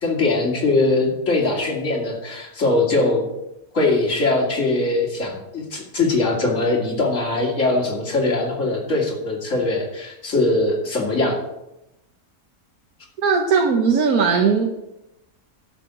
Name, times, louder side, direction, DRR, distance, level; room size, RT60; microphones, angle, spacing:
voice 1, 0.0-3.3 3.7-11.4, left 2 dB, 50° left, -2 dB, 2.9 m, -21 dB
voice 2, 13.2-14.7, right 5 dB, 70° right, 3 dB, 1.5 m, -18 dB
11.5 x 5.7 x 7.5 m, 0.91 s
omnidirectional pair, 1.6 m